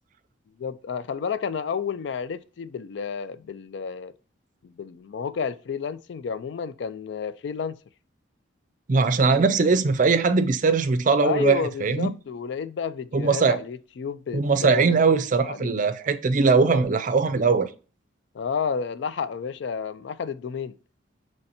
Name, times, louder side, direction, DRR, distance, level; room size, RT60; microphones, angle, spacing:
voice 1, 0.6-4.1 4.6-7.8 11.2-15.0 15.4-15.7 18.3-20.8, left 6 dB, 65° left, 0.3 m, -31 dB
voice 2, 8.9-12.1 13.1-13.6 14.3-17.7, right 4 dB, 40° right, 0.4 m, -20 dB
5.6 x 3.2 x 2.7 m
head